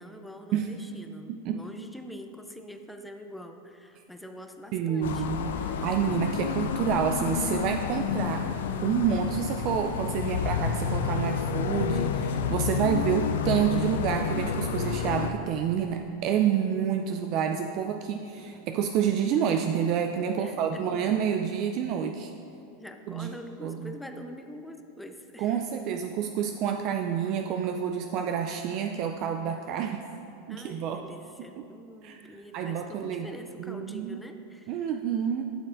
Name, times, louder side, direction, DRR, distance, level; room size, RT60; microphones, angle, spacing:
voice 1, 0.0-5.3 5.5-5.9 20.3-21.0 22.8-25.8 29.7-29.8 30.5-34.9, left 1 dB, 5° left, 6 dB, 0.6 m, -45 dB
voice 2, 1.3-1.6 4.7-5.5 5.8-8.5 8.8-22.3 23.1-23.4 23.6-23.9 25.4-30.0 30.5-31.0 32.0-33.3 33.6-34.2 34.7-35.4, right 8 dB, 50° right, 4 dB, 0.4 m, -28 dB
sound 1, 5.0-15.3, left 7 dB, 75° left, 0.4 m, -29 dB
11.5 x 6.5 x 2.6 m, 2.6 s
hypercardioid pair, 105°, 0 cm